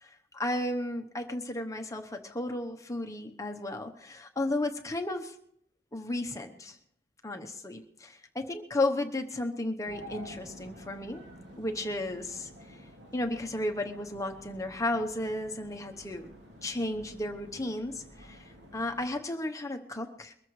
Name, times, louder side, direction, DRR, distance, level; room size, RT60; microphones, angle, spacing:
voice 1, 0.0-5.3 5.9-6.8 7.2-11.2 11.6-12.8 13.1-16.3 16.6-18.4 18.7-20.3, left 1 dB, 20° left, 5 dB, 0.9 m, -34 dB
sound 1, 9.8-19.0, equal, 90° right, 2.9 m, -50 dB
22.5 x 14.0 x 3.2 m, 0.74 s
head